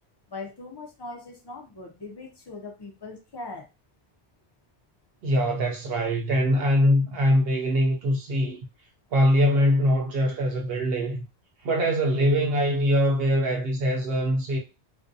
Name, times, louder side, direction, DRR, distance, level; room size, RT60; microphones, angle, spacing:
voice 1, 0.3-3.7, left 3 dB, 40° left, 0.4 m, -40 dB
voice 2, 5.2-8.6 9.1-11.2 11.6-14.6, equal, 70° right, 0.8 m, -23 dB
2.4 x 2.1 x 2.5 m
omnidirectional pair, 1.1 m